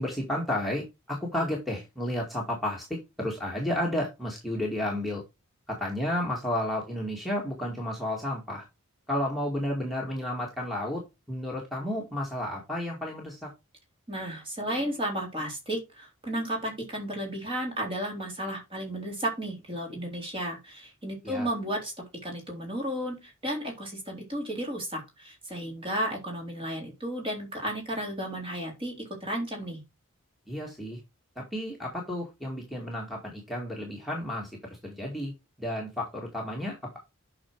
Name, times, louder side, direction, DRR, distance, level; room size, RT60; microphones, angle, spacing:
voice 1, 0.0-5.2 5.7-8.6 9.1-13.5 21.2-21.5 30.5-31.0 31.4-35.3 35.6-37.0, left 1 dB, ahead, -3 dB, 2.1 m, -32 dB
voice 2, 14.1-29.8, right 1 dB, 25° right, 1 dB, 3.6 m, -33 dB
8.5 x 6.0 x 4.7 m, 0.24 s
head